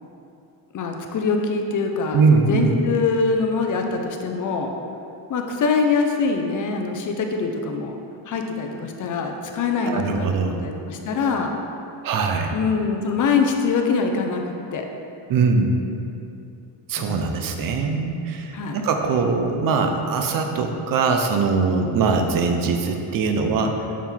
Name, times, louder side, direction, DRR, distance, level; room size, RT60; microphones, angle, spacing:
voice 1, 0.7-4.7 5.3-8.0 8.3-11.5 12.5-14.9 17.0-17.3 18.5-18.8, left 4 dB, 40° left, 3 dB, 0.5 m, -24 dB
voice 2, 2.1-2.7 9.8-10.6 12.0-12.5 15.3-15.8 16.9-24.1, right 4 dB, 45° right, 4 dB, 0.6 m, -22 dB
7.2 x 3.6 x 4.5 m, 2.7 s
cardioid pair, 155°, 48 cm